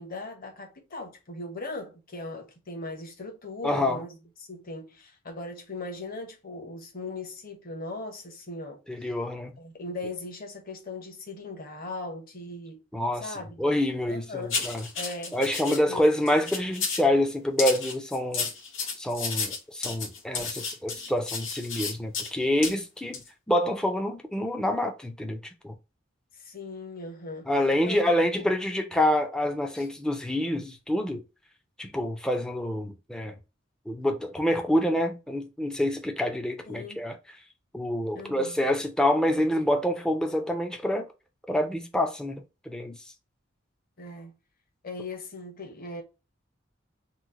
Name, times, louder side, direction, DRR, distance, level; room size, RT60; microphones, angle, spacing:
voice 1, 0.0-4.2 4.5-9.1 9.6-12.8 13.1-13.8 14.1-14.6 14.9-15.4 15.6-16.1 26.3-27.5 27.8-28.0 28.4-28.5 29.7-29.9 36.7-37.0 38.1-38.7 44.0-44.3 44.8-46.0, left 2 dB, 50° left, 1.0 m, -39 dB
voice 2, 3.6-4.0 8.9-9.5 12.9-13.3 13.6-14.8 15.3-18.5 19.0-25.7 27.5-31.2 31.8-33.3 33.9-37.2 37.7-41.1 41.5-43.0, left 1 dB, 5° left, 0.4 m, -27 dB
sound 1, 14.5-15.8 16.3-17.1 17.6-22.3 22.6-22.8 23.1-23.3, left 5 dB, 75° left, 1.1 m, -32 dB
2.9 x 2.1 x 3.6 m
head